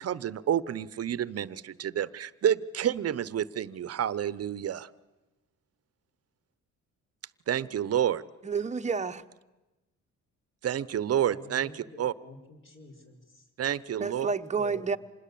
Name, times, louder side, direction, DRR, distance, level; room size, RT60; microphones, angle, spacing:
voice 1, 0.0-4.9 7.5-8.2 10.6-12.1 13.6-14.3, right 10 dB, 55° right, 18 dB, 0.9 m, -29 dB
voice 2, 8.4-9.2 14.0-15.0, right 5 dB, 25° right, 8 dB, 1.0 m, -29 dB
voice 3, 11.2-13.4 14.2-14.3 14.5-14.9, left 2 dB, 40° left, 2 dB, 5.9 m, -49 dB
26.5 x 20.5 x 8.6 m, 1.1 s
cardioid pair, 90°, 30 cm